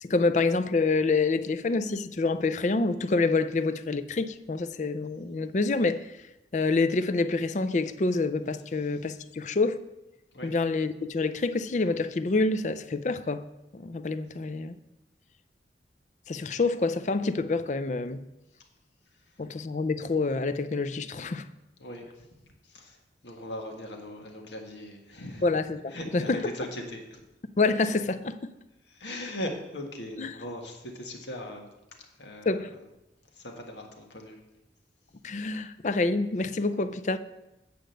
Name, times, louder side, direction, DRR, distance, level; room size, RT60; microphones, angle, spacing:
voice 1, 0.0-6.1 6.5-9.8 10.4-13.5 13.7-14.7 16.3-18.3 19.4-21.5 25.4-26.5 27.6-28.5 30.2-30.3 32.5-32.7 35.2-37.2, left 3 dB, 40° left, 0.4 m, -27 dB
voice 2, 23.2-25.4 25.9-27.2 28.9-31.7 32.2-32.6 33.4-34.4, left 1 dB, 85° left, 1.6 m, -39 dB
8.6 x 5.1 x 7.8 m
head